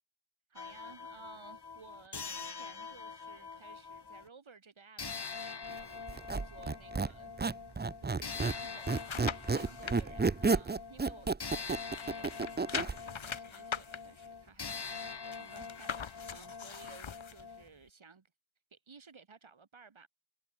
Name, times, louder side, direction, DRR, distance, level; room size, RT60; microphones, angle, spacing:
voice 1, 0.5-7.4 8.0-18.3 18.7-20.1, right 5 dB, 75° right, 4.9 m, -57 dB
sound 1, 0.6-4.3 5.0-17.7, left 5 dB, 55° left, 2.0 m, -44 dB
Squeak, 6.1-8.6 8.9-13.0, right 4 dB, 20° right, 0.6 m, -31 dB
sound 2, 8.7-10.0 10.5-11.6 11.9-17.4 17.9-18.0, left 7 dB, 75° left, 1.6 m, -42 dB
wide cardioid pair, 60°, 47 cm